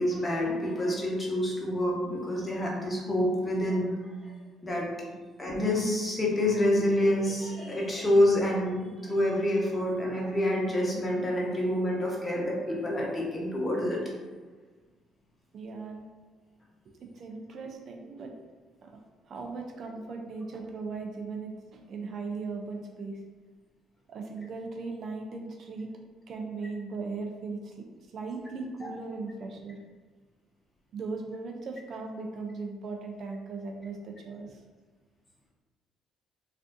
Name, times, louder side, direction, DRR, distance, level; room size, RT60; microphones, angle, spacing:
voice 1, 0.0-4.3 4.6-4.9 5.4-14.0, left 1 dB, 20° left, -3 dB, 1.0 m, -27 dB
voice 2, 15.5-16.0 16.9-18.3 18.8-19.0 19.3-23.2 24.1-25.9 26.3-29.8 30.9-34.6, right 4 dB, 60° right, 3 dB, 0.4 m, -38 dB
3.3 x 2.5 x 2.5 m, 1.3 s
supercardioid pair, 70°, 0 cm